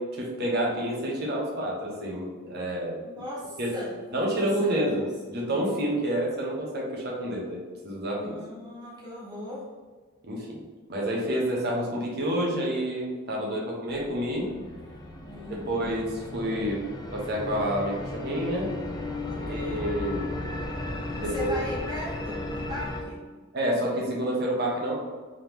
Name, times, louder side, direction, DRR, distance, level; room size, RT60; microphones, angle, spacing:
voice 1, 0.0-3.0 3.6-3.7 4.1-5.0 5.3-7.6 7.8-8.3 10.2-10.6 10.9-14.5 15.3-16.8 17.1-18.7 19.4-20.3 21.2-21.6 23.5-25.0, right 1 dB, 50° right, -3 dB, 1.0 m, -29 dB
voice 2, 3.0-5.1 8.1-9.7 15.2-15.6 19.3-19.8 21.2-23.3, left 1 dB, 20° right, -6 dB, 1.1 m, -38 dB
sound 1, 13.9-23.0, left 2 dB, 20° left, 0.4 m, -35 dB
3.7 x 3.5 x 3.0 m, 1.4 s
head